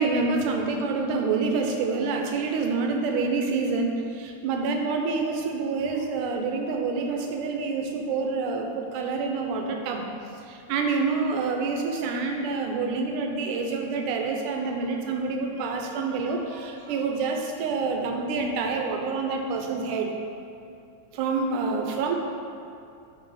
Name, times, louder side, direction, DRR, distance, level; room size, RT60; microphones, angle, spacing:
voice 1, 0.0-10.1 10.5-20.2 21.1-22.1, right 4 dB, 85° right, 2 dB, 2.2 m, -27 dB
5.4 x 4.7 x 4.7 m, 2.6 s
omnidirectional pair, 3.6 m